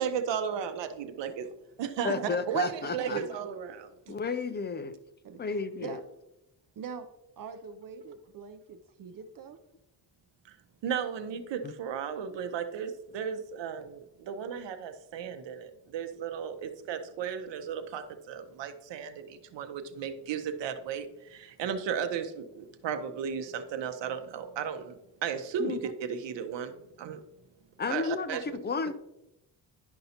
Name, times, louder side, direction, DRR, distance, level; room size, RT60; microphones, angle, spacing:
voice 1, 0.0-1.5 1.8-2.2 2.5-3.9 10.8-14.0 14.3-15.7 15.9-19.1 19.5-21.1 21.6-22.3 22.6-24.9 25.2-27.2 27.9-28.4, right 7 dB, 80° right, 8 dB, 0.8 m, -34 dB
voice 2, 2.0-3.2 4.1-5.0 5.4-6.0 11.6-11.7 25.6-25.8 27.8-28.9, left 5 dB, 25° left, 11 dB, 0.4 m, -32 dB
voice 3, 5.2-6.0 6.8-7.1 7.4-9.6, right 6 dB, 50° right, 9 dB, 0.6 m, -42 dB
10.5 x 5.4 x 2.8 m, 0.88 s
cardioid pair, 140°, 43 cm